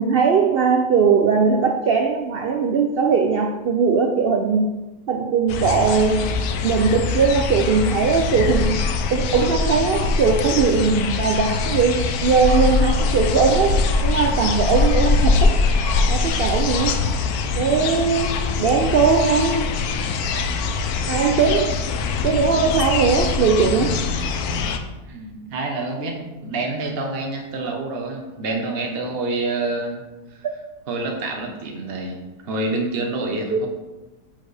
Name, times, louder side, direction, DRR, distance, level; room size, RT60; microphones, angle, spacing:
voice 1, 0.0-4.7 5.1-6.4 6.6-8.8 9.1-15.6 16.1-17.0 17.6-19.7 21.1-21.8 22.2-24.0 33.5-33.6, right 5 dB, 80° right, 4 dB, 0.5 m, -19 dB
sound 1, 5.5-24.8, left 4 dB, 75° left, 1.1 m, -22 dB
voice 2, 25.1-26.1 26.4-30.0 30.9-32.2 32.4-33.7, right 2 dB, 45° right, 2 dB, 1.2 m, -27 dB
9.3 x 4.7 x 3.4 m, 1.1 s
omnidirectional pair, 1.6 m